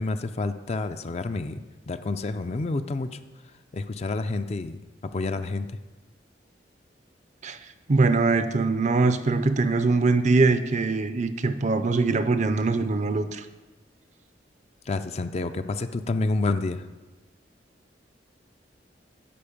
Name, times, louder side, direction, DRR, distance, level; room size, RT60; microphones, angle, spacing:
voice 1, 0.0-3.2 3.7-4.8 5.1-5.7 14.9-16.8, left 3 dB, 35° left, 10 dB, 0.4 m, -29 dB
voice 2, 7.9-13.4, right 3 dB, 40° right, 11 dB, 0.5 m, -22 dB
8.5 x 5.2 x 7.1 m, 1.2 s
head